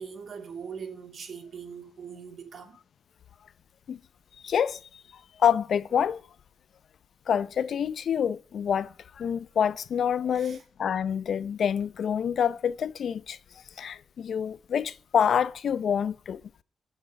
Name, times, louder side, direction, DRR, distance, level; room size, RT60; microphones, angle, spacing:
voice 1, 0.0-2.8 10.3-10.6, right 6 dB, 55° right, 2.1 m, -41 dB
voice 2, 4.4-4.8 5.4-6.2 7.3-8.9 9.2-13.4 13.8-16.4, left 8 dB, 65° left, 0.6 m, -27 dB
15.0 x 6.6 x 8.2 m
wide cardioid pair, 135°, 0 cm